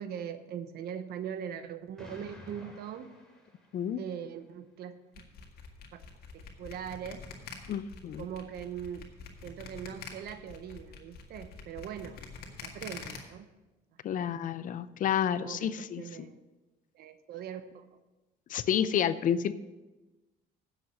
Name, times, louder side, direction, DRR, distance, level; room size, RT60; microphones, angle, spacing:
voice 1, 0.0-3.1 4.0-4.9 5.9-6.0 6.3-7.2 8.2-9.1 9.4-12.2 12.6-13.5 14.1-14.4 15.4-16.4 16.9-17.9, right 8 dB, 70° right, 10 dB, 0.9 m, -41 dB
Explosion, 2.0-4.2, left 1 dB, 5° left, 2.9 m, -51 dB
sound 1, 5.1-13.2, left 6 dB, 65° left, 1.9 m, -45 dB
voice 2, 7.7-8.2 14.0-16.3 18.5-19.5, left 9 dB, 50° left, 15 dB, 0.5 m, -30 dB
9.6 x 7.3 x 6.4 m, 1.1 s
cardioid pair, 110°, 17 cm